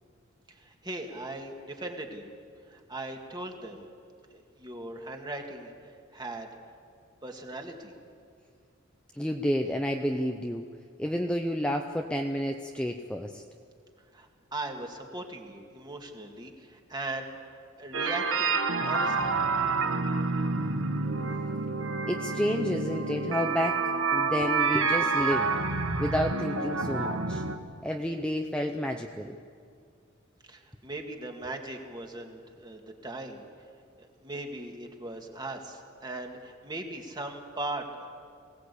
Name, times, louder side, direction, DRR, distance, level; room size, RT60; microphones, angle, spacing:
voice 1, 0.5-2.3 2.7-3.9 4.3-5.7 6.1-6.5 7.2-7.9 14.1-19.4 30.5-33.4 34.0-38.1, right 2 dB, 20° right, 2 dB, 2.1 m, -39 dB
voice 2, 9.1-10.6 11.0-13.4 22.1-23.8 24.1-25.5 26.0-27.4 27.8-29.4, equal, 5° left, 3 dB, 0.7 m, -30 dB
sound 1, 17.9-27.6, right 4 dB, 80° right, 1.4 m, -28 dB
21.5 x 18.0 x 8.4 m, 2.2 s
head